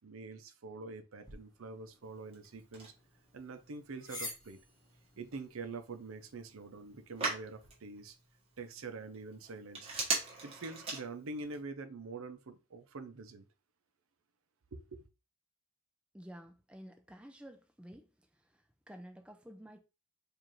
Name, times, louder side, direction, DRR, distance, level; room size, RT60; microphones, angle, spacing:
voice 1, 0.0-2.9 3.3-4.6 5.2-8.2 8.6-9.9 10.4-13.5 14.7-15.0, right 3 dB, 85° right, 0.6 m, -45 dB
sound 1, 1.2-7.7, left 2 dB, 20° left, 1.1 m, -52 dB
Telephone, 2.0-11.6, right 3 dB, 30° right, 1.2 m, -43 dB
voice 2, 16.1-18.1 18.5-19.8, equal, 5° right, 0.4 m, -51 dB
4.7 x 2.5 x 3.0 m
head